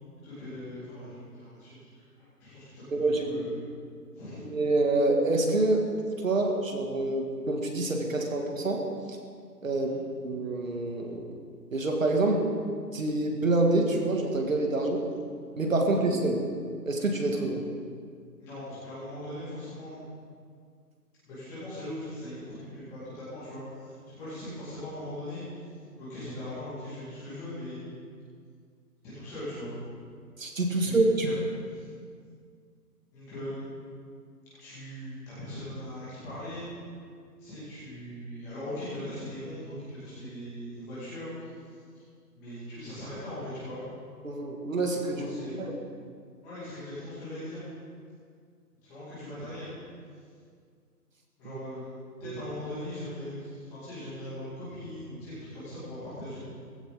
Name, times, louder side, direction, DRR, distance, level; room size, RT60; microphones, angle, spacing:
voice 1, 0.2-2.1 2.4-3.6 4.1-4.4 9.7-10.0 15.8-16.1 18.4-20.0 21.2-27.8 29.0-29.7 30.7-30.9 31.2-31.3 31.7-31.9 33.1-33.6 34.6-36.7 37.4-42.0 42.3-43.8 45.1-45.6 46.4-47.6 48.8-49.7 51.4-51.9 52.2-56.4, left 1 dB, 5° left, -12 dB, 2.0 m, -40 dB
voice 2, 2.9-3.2 4.4-5.9 6.2-8.8 9.1-9.2 9.6-9.9 10.2-11.3 11.7-12.4 12.9-15.0 15.6-16.4 16.9-17.6 30.4-31.3 44.2-45.3 45.6-45.8 52.2-52.4, right 2 dB, 50° right, 2 dB, 2.1 m, -26 dB
17.0 x 16.0 x 3.8 m, 2.1 s
hypercardioid pair, 170°, 49 cm